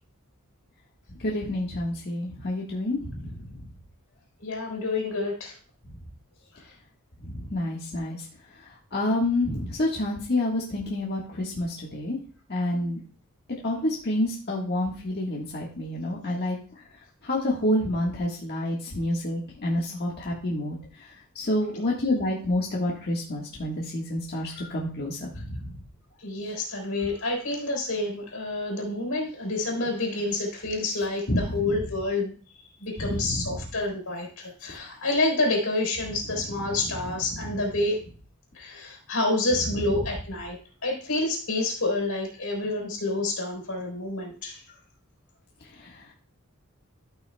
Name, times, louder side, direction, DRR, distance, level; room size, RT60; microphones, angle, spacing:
voice 1, 1.2-3.4 7.5-8.2 8.9-12.2 12.5-13.0 13.5-16.6 17.2-20.8 21.3-25.7 31.3-31.8 33.0-33.6 37.3-37.5 45.8-45.9, left 1 dB, 50° left, -3 dB, 1.5 m, -28 dB
voice 2, 4.4-5.5 26.2-32.3 32.8-38.0 38.5-40.6 40.8-44.6, left 2 dB, 85° left, 0 dB, 3.8 m, -28 dB
14.0 x 6.0 x 2.3 m, 0.40 s
head